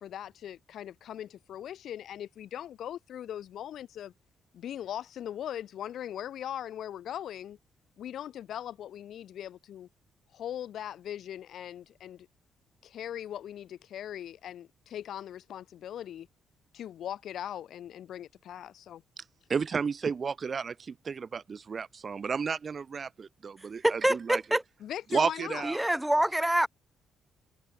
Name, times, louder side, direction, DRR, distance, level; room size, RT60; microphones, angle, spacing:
voice 1, 0.0-4.1 4.5-7.6 8.0-9.9 10.3-12.3 12.8-16.3 16.7-19.0 24.8-25.7, left 10 dB, 70° left, 4.8 m, -40 dB
voice 2, 19.5-24.4 25.1-25.8, right 5 dB, 40° right, 1.2 m, -32 dB
voice 3, 23.8-24.6 25.6-26.7, right 1 dB, 5° right, 0.7 m, -26 dB
cardioid pair, 90°, 0 cm